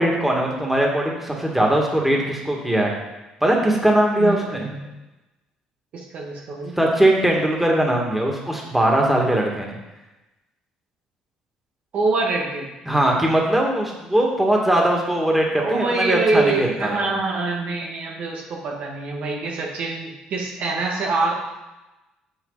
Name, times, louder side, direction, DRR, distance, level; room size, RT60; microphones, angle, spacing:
voice 1, 0.0-2.9 3.4-4.7 6.8-9.8 12.9-17.0, right 1 dB, 5° right, -1 dB, 2.4 m, -20 dB
voice 2, 4.2-4.8 5.9-6.8 11.9-12.7 15.6-21.3, right 3 dB, 60° right, -1 dB, 1.9 m, -25 dB
8.5 x 7.3 x 4.2 m, 1.0 s
hypercardioid pair, 60°, 3 cm